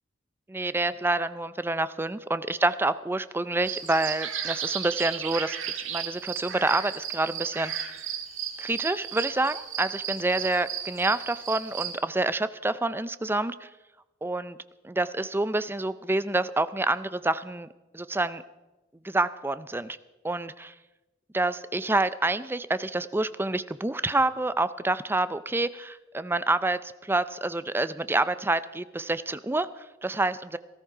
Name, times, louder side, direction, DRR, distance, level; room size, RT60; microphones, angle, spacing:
voice 1, 0.5-5.6 5.9-7.7 8.6-13.7 14.2-14.6 14.8-17.7 17.9-18.4 19.0-20.0 20.2-20.7 21.3-30.6, right 2 dB, 10° right, 14 dB, 0.5 m, -27 dB
sound 1, 3.6-12.0, right 8 dB, 85° right, 1.8 m, -34 dB
18.5 x 13.5 x 5.0 m, 1.1 s
head